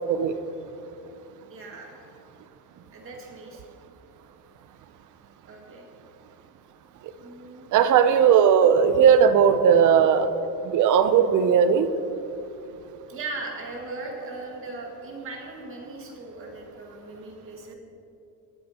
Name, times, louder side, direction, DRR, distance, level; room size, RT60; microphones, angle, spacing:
voice 1, 1.5-2.0 2.9-3.6 5.5-5.9 7.2-7.7 13.1-17.8, right 3 dB, 35° right, -1 dB, 2.0 m, -38 dB
voice 2, 7.7-10.3 10.6-11.9, right 7 dB, 55° right, 11 dB, 0.6 m, -18 dB
18.5 x 8.8 x 2.9 m, 2.9 s
cardioid pair, 155°, 37 cm